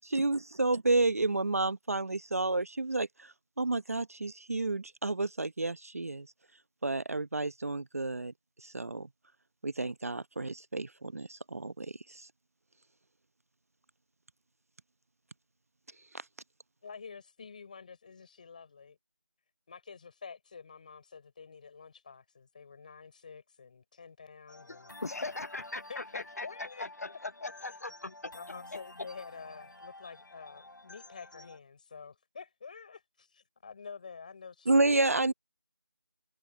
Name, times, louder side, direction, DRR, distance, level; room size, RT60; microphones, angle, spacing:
voice 1, 0.1-3.1 3.6-6.3 6.8-8.3 8.7-9.1 9.6-11.9 34.7-35.3, right 2 dB, 50° right, 1.0 m, -30 dB
voice 2, 16.8-19.0 19.7-25.0 25.9-27.2 28.3-35.1, left 5 dB, 25° left, 4.3 m, -48 dB
sound 1, 24.5-31.6, left 2 dB, 80° left, 3.6 m, -51 dB
voice 3, 24.7-28.3, left 2 dB, 50° left, 0.8 m, -40 dB
figure-of-eight pair, 170°, 10 cm